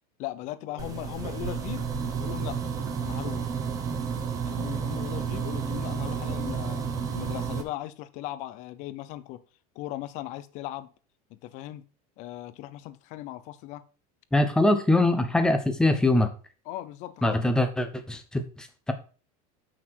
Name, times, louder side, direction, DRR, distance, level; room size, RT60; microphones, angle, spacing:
voice 1, 0.2-2.6 3.0-3.5 4.4-9.4 9.7-10.9 11.3-11.8 12.2-13.8 16.7-17.6, left 14 dB, 40° left, 0.7 m, -38 dB
sound 1, 0.8-7.6, right 6 dB, 20° right, 1.0 m, -31 dB
voice 2, 14.3-16.3 17.2-18.9, left 2 dB, 5° left, 0.8 m, -23 dB
8.2 x 6.1 x 4.5 m
supercardioid pair, 175°, 19 cm